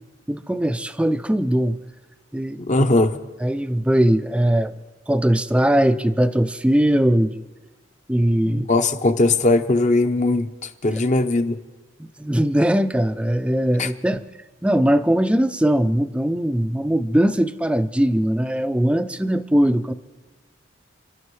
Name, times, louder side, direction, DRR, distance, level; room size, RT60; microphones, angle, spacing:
voice 1, 0.3-1.8 2.3-2.9 3.4-4.7 5.1-7.4 8.1-8.7 12.0-14.2 14.6-19.9, right 1 dB, 5° right, 0.4 m, -20 dB
voice 2, 2.7-3.2 8.4-10.5 10.8-11.6 13.8-13.9, left 2 dB, 40° left, 0.8 m, -19 dB
30.0 x 12.5 x 3.2 m
head